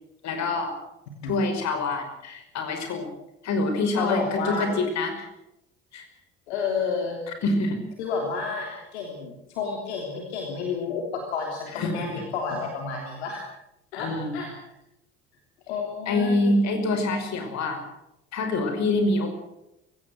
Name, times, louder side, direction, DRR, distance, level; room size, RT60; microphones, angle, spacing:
voice 1, 0.2-0.7 1.2-3.1 3.4-5.3 5.9-6.1 7.4-7.8 11.7-12.2 14.0-14.4 16.1-17.8 18.3-19.3, left 2 dB, 55° left, 6 dB, 5.5 m, -26 dB
voice 2, 4.0-4.6 6.5-7.2 8.0-13.4 13.9-14.5 15.7-16.6, left 5 dB, 75° left, 1 dB, 3.3 m, -30 dB
23.5 x 16.5 x 7.9 m, 0.87 s
figure-of-eight pair, 55°, 34 cm